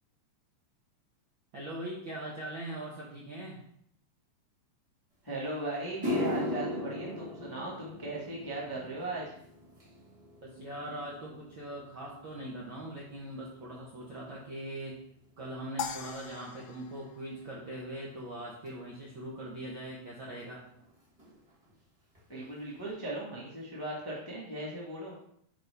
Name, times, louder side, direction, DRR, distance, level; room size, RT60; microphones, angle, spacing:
voice 1, 1.5-3.6 10.4-15.0 15.4-20.6, right 1 dB, 70° right, -4 dB, 1.2 m, -41 dB
voice 2, 5.2-9.3 22.3-25.1, right 1 dB, 30° left, -5 dB, 0.4 m, -38 dB
sound 1, 5.3-5.4 5.8-14.3 14.6-15.1 15.8-15.9 18.7-18.8 20.4-20.5 20.7-20.9 21.2-21.7 22.1-22.2 22.8-22.9, left 1 dB, 35° right, 0.5 m, -39 dB
sound 2, 15.8-18.2, left 7 dB, 80° left, 1.9 m, -41 dB
6.6 x 5.4 x 3.4 m, 0.68 s
omnidirectional pair, 3.7 m